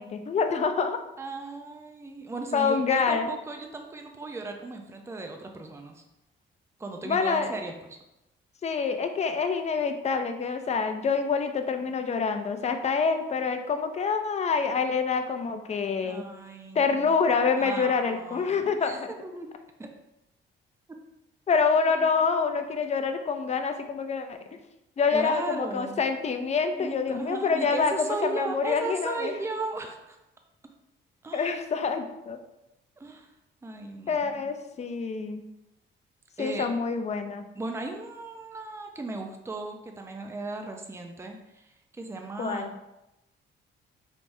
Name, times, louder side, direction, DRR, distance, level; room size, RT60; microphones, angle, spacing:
voice 1, 0.0-1.0 2.5-3.3 7.0-7.5 8.6-16.3 16.7-19.1 21.5-24.4 25.0-29.4 31.3-32.4 34.1-35.5 36.4-37.4 42.4-42.7, left 5 dB, 35° left, 7 dB, 0.5 m, -26 dB
voice 2, 1.2-6.0 6.8-7.7 16.0-17.1 17.6-19.5 19.8-19.9 22.0-22.1 25.1-26.0 26.8-30.2 31.2-31.5 33.0-33.3 33.6-34.5 36.4-36.7 37.5-42.8, right 3 dB, 15° right, 3 dB, 0.5 m, -36 dB
4.6 x 3.3 x 2.7 m, 0.90 s
cardioid pair, 90°, 20 cm